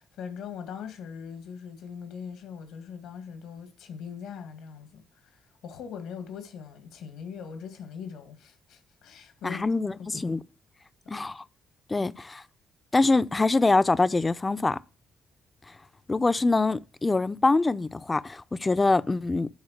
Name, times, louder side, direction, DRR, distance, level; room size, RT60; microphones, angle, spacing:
voice 1, 0.0-9.6 10.0-10.4, left 7 dB, 85° left, 1.9 m, -41 dB
voice 2, 9.4-10.4 11.1-11.4 11.9-12.4 12.9-14.8 16.1-19.5, left 3 dB, 20° left, 0.5 m, -24 dB
10.5 x 4.0 x 6.5 m
cardioid pair, 90°, 0 cm